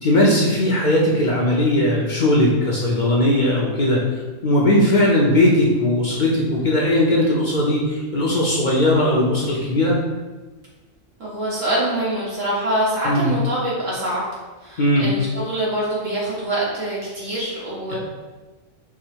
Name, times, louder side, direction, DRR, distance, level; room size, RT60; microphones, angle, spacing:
voice 1, 0.0-4.0 4.4-10.0 13.0-13.3 14.8-15.1 17.9-18.0, left 1 dB, 50° left, -4 dB, 0.6 m, -18 dB
voice 2, 11.2-14.2 14.6-18.0, right 1 dB, 85° right, -7 dB, 1.8 m, -24 dB
4.7 x 2.1 x 4.4 m, 1.3 s
omnidirectional pair, 1.3 m